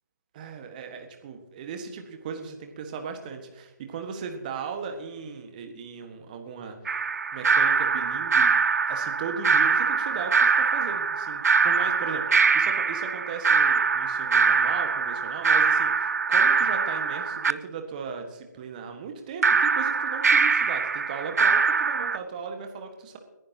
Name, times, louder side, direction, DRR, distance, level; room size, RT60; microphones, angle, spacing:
voice 1, 0.3-7.0 7.3-8.6 8.9-23.2, right 5 dB, 25° right, 5 dB, 1.6 m, -37 dB
sound 1, 6.9-17.5 19.4-22.2, right 5 dB, 55° right, 0.5 m, -23 dB
29.5 x 10.5 x 2.9 m, 1.1 s
figure-of-eight pair, 145°, 10 cm